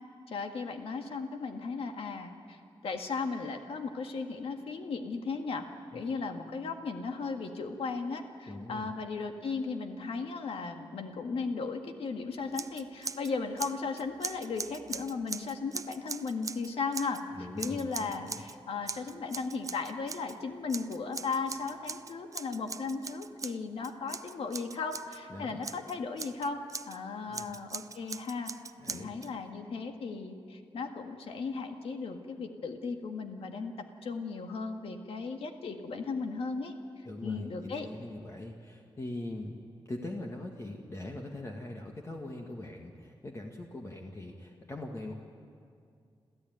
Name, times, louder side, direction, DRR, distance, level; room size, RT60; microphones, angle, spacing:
voice 1, 0.3-5.7 5.9-28.5 28.9-33.7 34.0-36.7 37.2-37.9, left 4 dB, 90° left, 5 dB, 1.8 m, -36 dB
voice 2, 8.5-8.9 17.3-18.4 25.3-25.7 27.3-27.5 28.8-29.2 37.1-39.6 39.9-45.1, left 1 dB, 30° left, 1 dB, 1.8 m, -41 dB
Scissors, 12.5-13.3 13.6-17.2 17.6-18.6 18.9-20.4 20.7-25.2 25.6-27.0 27.3-29.3, right 4 dB, 35° right, 0.5 m, -41 dB
27.5 x 14.5 x 9.4 m, 2.3 s
wide cardioid pair, 110°, 9 cm